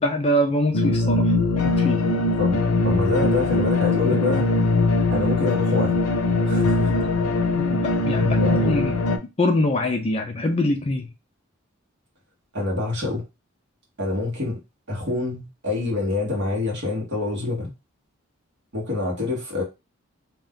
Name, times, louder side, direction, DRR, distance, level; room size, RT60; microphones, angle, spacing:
voice 1, 0.0-2.1 4.1-4.2 6.8-7.1 7.5-9.0 9.4-11.1, left 1 dB, 25° left, 0.4 m, -24 dB
sound 1, 0.7-9.2, left 2 dB, 85° left, 0.5 m, -21 dB
voice 2, 2.4-4.4 5.1-6.0 6.5-6.9 8.4-8.7 12.5-13.2 14.0-14.6 14.9-17.7 18.7-19.6, left 3 dB, 50° right, 1.1 m, -26 dB
2.5 x 2.3 x 3.6 m
head